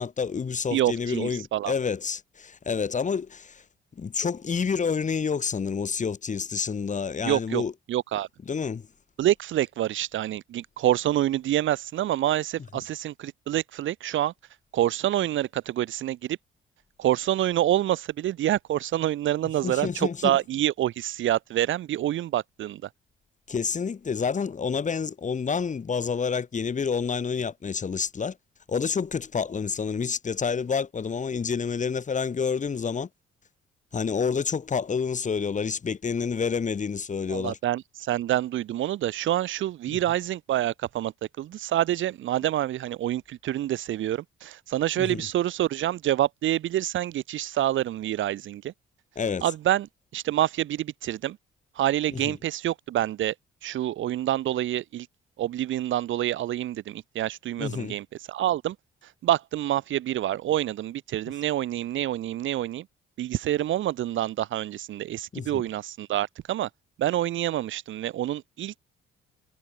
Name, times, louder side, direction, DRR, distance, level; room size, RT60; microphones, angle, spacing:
voice 1, 0.0-3.6 4.0-7.8 8.4-8.9 12.7-12.8 19.4-20.4 23.5-28.4 28.7-33.1 33.9-37.6 39.9-40.0 45.0-45.3 49.2-49.5 52.1-52.4 57.6-58.0 65.3-65.6, left 6 dB, 40° left, 2.7 m, -29 dB
voice 2, 0.7-1.7 7.2-7.6 7.9-8.3 9.2-14.3 14.7-16.4 17.0-22.9 37.3-48.7 49.4-49.9 50.1-51.4 51.8-53.3 53.6-55.1 55.4-58.8 59.2-62.9 63.2-66.7 67.0-68.8, right 13 dB, 75° right, 2.2 m, -27 dB
cardioid pair, 90°, 20 cm